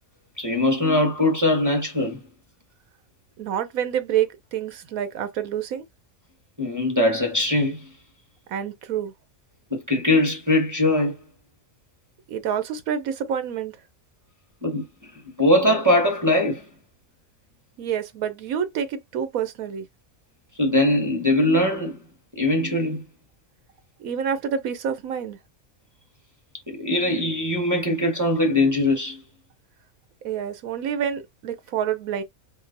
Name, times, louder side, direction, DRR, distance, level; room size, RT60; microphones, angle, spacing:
voice 1, 0.4-2.2 6.6-7.9 9.7-11.2 14.6-14.8 15.4-16.7 20.6-22.0 22.4-23.0 26.7-29.2, left 1 dB, 15° right, 1.0 m, -21 dB
voice 2, 3.4-5.8 8.5-9.1 12.3-13.8 17.8-19.9 24.0-25.4 30.2-32.2, right 8 dB, 80° right, 1.2 m, -27 dB
4.3 x 2.1 x 3.9 m
omnidirectional pair, 1.4 m